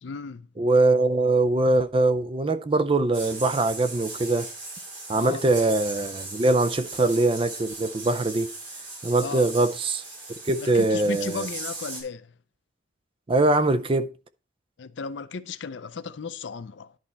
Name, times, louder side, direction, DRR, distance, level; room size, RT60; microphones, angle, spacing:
voice 1, 0.0-0.5 5.1-5.4 9.2-9.5 10.6-12.3 14.8-17.0, left 5 dB, 75° left, 0.5 m, -35 dB
voice 2, 0.6-4.5 5.1-8.5 9.0-10.0 10.4-11.5 13.3-14.1, right 2 dB, 30° right, 0.4 m, -22 dB
sound 1, 3.1-12.0, right 2 dB, 70° right, 3.6 m, -38 dB
11.0 x 4.3 x 4.1 m
head